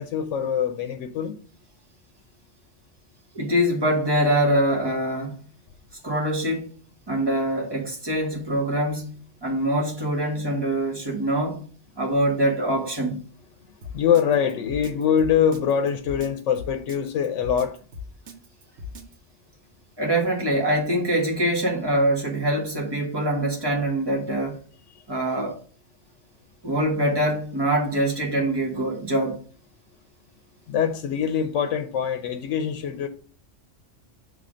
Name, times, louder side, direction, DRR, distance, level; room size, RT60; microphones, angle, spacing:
voice 1, 0.0-1.4 13.8-17.8 30.7-33.1, left 8 dB, 90° left, 1.0 m, -24 dB
voice 2, 3.3-5.4 6.0-6.8 7.1-11.6 12.0-13.2 20.0-24.6 25.1-25.6 26.6-29.4, right 1 dB, 20° right, 1.3 m, -24 dB
Drum kit, 13.8-19.2, left 4 dB, 85° right, 1.3 m, -38 dB
5.8 x 3.3 x 4.9 m
omnidirectional pair, 1.2 m